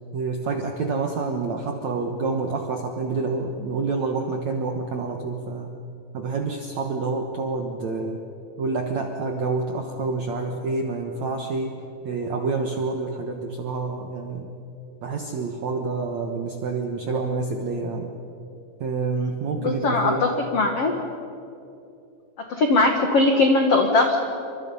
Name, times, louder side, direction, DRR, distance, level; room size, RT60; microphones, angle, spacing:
voice 1, 0.1-5.7 6.1-8.2 8.6-11.8 12.0-14.5 15.0-18.1 18.8-20.3, right 3 dB, 75° right, 3 dB, 1.6 m, -28 dB
voice 2, 19.6-20.9 22.5-24.2, left 3 dB, 85° left, 3 dB, 1.3 m, -20 dB
28.5 x 25.0 x 5.6 m, 2.7 s
omnidirectional pair, 5.3 m